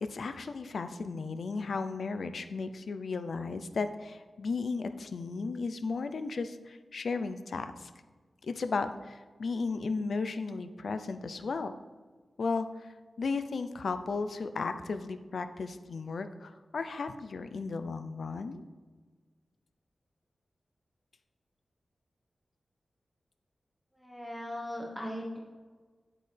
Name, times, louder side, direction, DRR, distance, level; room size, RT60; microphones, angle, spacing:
voice 1, 0.0-7.9 8.4-11.7 12.4-18.6, left 4 dB, 65° left, 10 dB, 0.5 m, -35 dB
voice 2, 23.9-25.4, left 1 dB, ahead, -2 dB, 1.2 m, -38 dB
8.4 x 8.4 x 3.4 m, 1.4 s
wide cardioid pair, 140°, 0 cm